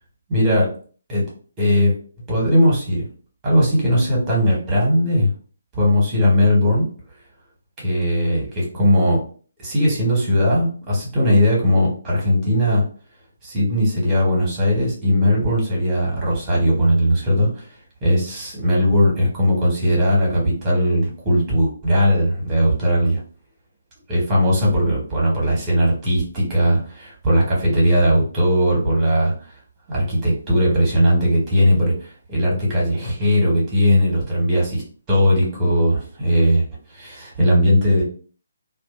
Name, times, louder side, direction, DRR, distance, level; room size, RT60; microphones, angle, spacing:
voice 1, 0.3-0.7 1.1-1.2 1.6-1.9 2.3-3.0 3.4-5.3 5.7-6.8 7.8-9.2 9.6-12.8 13.4-17.7 18.0-23.2 24.1-29.3 29.9-34.8 35.1-36.6 36.9-38.0, equal, 15° right, -4 dB, 1.2 m, -18 dB
2.4 x 2.3 x 2.5 m, 0.42 s
figure-of-eight pair, 140°, 0 cm